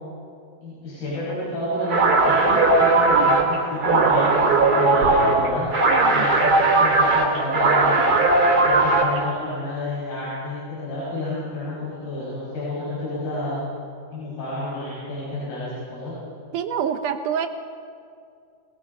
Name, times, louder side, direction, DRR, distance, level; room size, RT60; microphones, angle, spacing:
voice 1, 0.6-5.7 6.0-8.1 8.6-13.6 14.1-16.1, left 1 dB, 70° left, -9 dB, 8.1 m, -30 dB
sound 1, 1.8-9.3, right 3 dB, 25° right, 2.6 m, -18 dB
sound 2, 5.0-5.5, right 4 dB, 55° right, 2.8 m, -32 dB
voice 2, 5.9-6.3 16.5-17.5, right 8 dB, 75° right, 8 dB, 1.9 m, -27 dB
28.0 x 19.0 x 5.5 m, 2.3 s
omnidirectional pair, 4.4 m